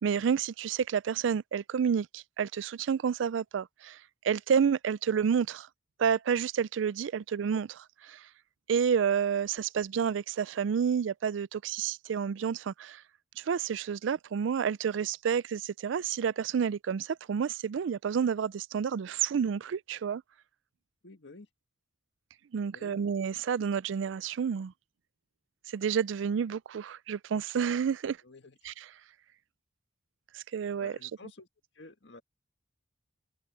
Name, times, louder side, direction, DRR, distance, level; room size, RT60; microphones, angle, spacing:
voice 1, 0.0-4.0 4.2-5.7 6.0-8.3 8.7-13.0 13.4-20.2 22.5-24.7 25.7-28.2 28.7-28.8 30.3-30.9, right 7 dB, 80° right, 0.4 m, -29 dB
voice 2, 21.0-21.5 22.7-23.0 28.2-28.6 30.8-31.5 31.7-32.2, left 2 dB, 65° left, 1.8 m, -50 dB
head